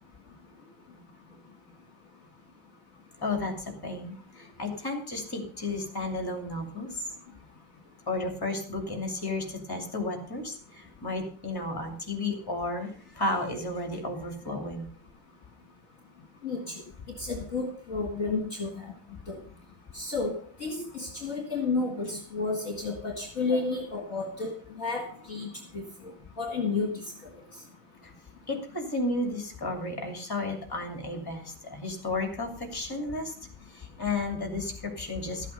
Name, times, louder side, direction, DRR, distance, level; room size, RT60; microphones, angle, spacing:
voice 1, 3.2-7.1 8.1-14.9 23.5-23.6 28.0-28.1 28.5-33.3 33.7-35.5, left 2 dB, 10° left, 3 dB, 2.7 m, -33 dB
voice 2, 17.2-18.9 19.3-19.4 19.9-20.3 20.6-24.5 24.8-25.5 25.7-25.8 26.4-26.9, left 3 dB, 40° left, 1 dB, 2.2 m, -31 dB
13.0 x 8.4 x 5.4 m, 0.44 s
omnidirectional pair, 2.3 m